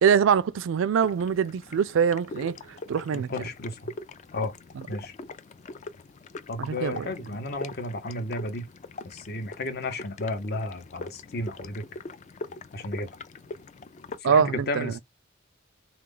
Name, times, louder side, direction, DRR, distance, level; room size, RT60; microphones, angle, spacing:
voice 1, 0.0-3.3 4.8-4.9 6.6-7.1 14.2-14.9, right 7 dB, 75° right, 0.4 m, -24 dB
sound 1, 1.0-14.2, left 3 dB, 35° left, 0.3 m, -42 dB
voice 2, 3.1-3.9 4.3-4.5 4.9-5.1 6.5-8.7 9.0-11.8 12.7-13.1 14.2-15.0, left 2 dB, 55° left, 0.7 m, -33 dB
3.5 x 2.3 x 3.7 m
head